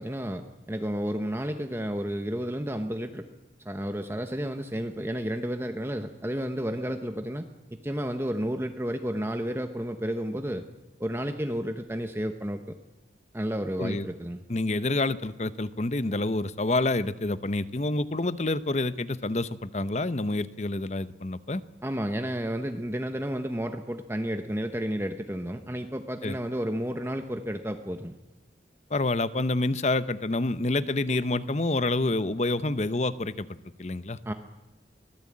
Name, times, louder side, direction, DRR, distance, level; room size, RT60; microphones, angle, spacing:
voice 1, 0.0-3.2 3.6-10.7 11.0-12.8 13.3-14.4 21.8-28.2 34.2-34.3, equal, 15° right, 6 dB, 1.0 m, -31 dB
voice 2, 14.5-21.6 26.2-26.4 28.9-34.3, left 2 dB, 40° left, 14 dB, 0.8 m, -28 dB
23.5 x 17.5 x 8.6 m, 1.0 s
head